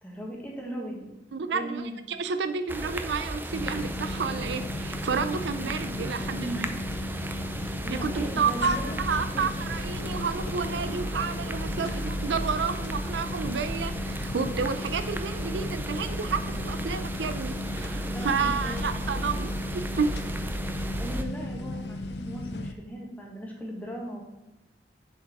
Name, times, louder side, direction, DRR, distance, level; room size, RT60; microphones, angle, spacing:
voice 1, 0.0-1.1 1.5-2.0 7.8-9.1 9.3-9.5 11.7-12.2 18.1-19.0 20.9-24.2, equal, 10° left, -2 dB, 1.6 m, -38 dB
voice 2, 1.3-6.7 7.9-19.6 20.0-20.1, right 5 dB, 75° right, 10 dB, 0.5 m, -30 dB
sound 1, 2.7-21.2, right 1 dB, 10° right, 0.5 m, -35 dB
sound 2, 3.5-22.7, left 2 dB, 65° left, 0.6 m, -36 dB
7.1 x 4.7 x 5.9 m, 1.0 s
head